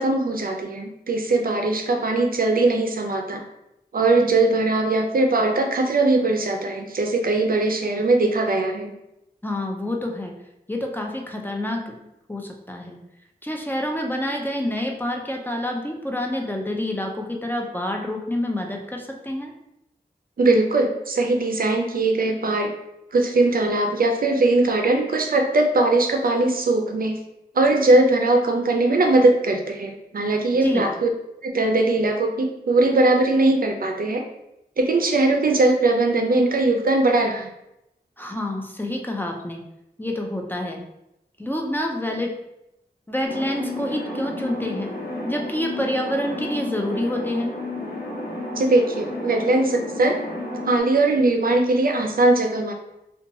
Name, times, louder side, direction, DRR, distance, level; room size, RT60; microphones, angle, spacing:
voice 1, 0.0-3.4 3.9-8.9 20.4-22.7 23.1-27.2 27.5-31.1 31.4-34.2 34.8-37.5 48.6-50.1 50.6-52.7, right 2 dB, 60° right, 3 dB, 0.4 m, -20 dB
voice 2, 9.4-10.3 10.7-13.0 13.4-19.5 30.6-30.9 38.2-39.6 40.0-40.8 41.4-42.3 43.1-44.9 45.2-47.5, left 1 dB, 10° left, 1 dB, 0.4 m, -27 dB
sound 1, 43.2-50.8, left 2 dB, 65° left, 0.6 m, -32 dB
2.8 x 2.2 x 2.6 m, 0.86 s
wide cardioid pair, 65°, 17 cm